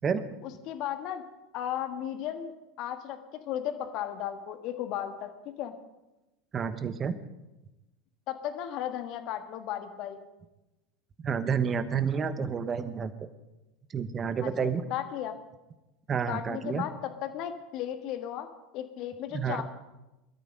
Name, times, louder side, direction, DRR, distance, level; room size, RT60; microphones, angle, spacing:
voice 1, 0.4-1.2 1.5-5.7 8.3-10.2 14.4-15.3 16.3-18.5 18.7-19.6, left 11 dB, 50° left, 8 dB, 1.6 m, -35 dB
voice 2, 6.5-7.2 11.2-13.1 13.9-14.9 16.1-16.8 19.3-19.6, right 6 dB, 30° right, 11 dB, 1.2 m, -29 dB
23.0 x 13.0 x 3.9 m, 1.0 s
figure-of-eight pair, 80°, 0 cm